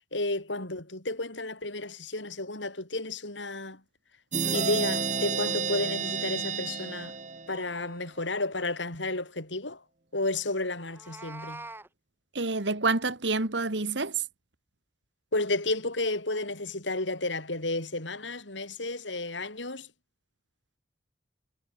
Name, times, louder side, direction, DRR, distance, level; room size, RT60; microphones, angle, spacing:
voice 1, 0.0-3.8 4.5-7.1 7.5-9.8 10.1-11.7 15.3-19.9, left 2 dB, 85° left, 7.1 m, -32 dB
sound 1, 4.3-7.9, right 5 dB, 40° right, 2.2 m, -31 dB
Meow, 10.8-11.9, right 2 dB, 10° right, 4.9 m, -43 dB
voice 2, 12.3-14.2, right 3 dB, 75° right, 2.0 m, -28 dB
head